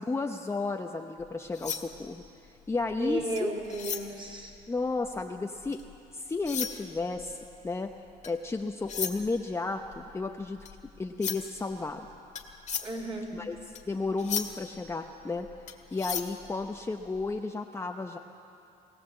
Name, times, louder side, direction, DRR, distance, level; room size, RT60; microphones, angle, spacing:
voice 1, 0.1-2.2 2.7-3.5 4.7-5.8 6.1-7.4 7.6-7.9 8.2-10.7 11.0-12.1 13.3-13.6 13.9-15.5 15.9-18.2, left 3 dB, 15° left, 3 dB, 0.8 m, -33 dB
sound 1, 1.2-6.0 6.3-17.3, left 7 dB, 45° left, 1.9 m, -38 dB
voice 2, 3.0-4.5 12.8-13.3, right 1 dB, 30° right, 1 dB, 3.7 m, -34 dB
20.0 x 18.0 x 7.8 m, 2.7 s
cardioid pair, 110°, 17 cm